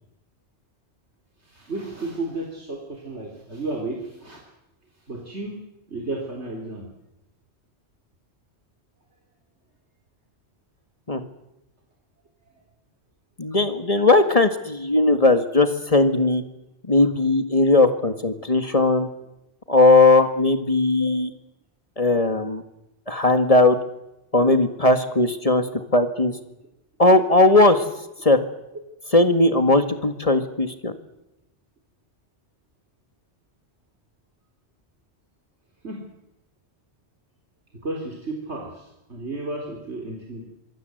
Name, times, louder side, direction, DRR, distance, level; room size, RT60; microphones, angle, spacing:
voice 1, 1.4-4.4 5.1-5.6 5.9-6.9 21.0-21.1 35.8-36.0 37.8-40.4, right 2 dB, 80° right, 0 dB, 4.2 m, -33 dB
voice 2, 13.4-16.4 16.9-19.1 19.7-21.3 22.0-22.6 23.1-23.8 24.3-26.3 27.0-27.8 28.2-28.4 29.1-30.9, left 2 dB, 35° left, 8 dB, 1.9 m, -18 dB
26.0 x 22.0 x 7.9 m, 0.91 s
omnidirectional pair, 1.1 m